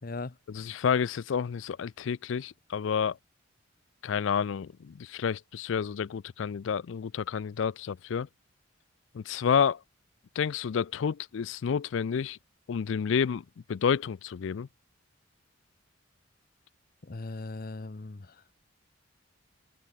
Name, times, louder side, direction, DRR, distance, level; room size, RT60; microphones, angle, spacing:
voice 1, 0.0-0.4 17.0-18.4, left 3 dB, 45° left, 0.7 m, -39 dB
voice 2, 0.5-3.2 4.0-8.3 9.1-9.8 10.4-12.4 12.7-14.7, left 7 dB, 70° left, 0.4 m, -29 dB
head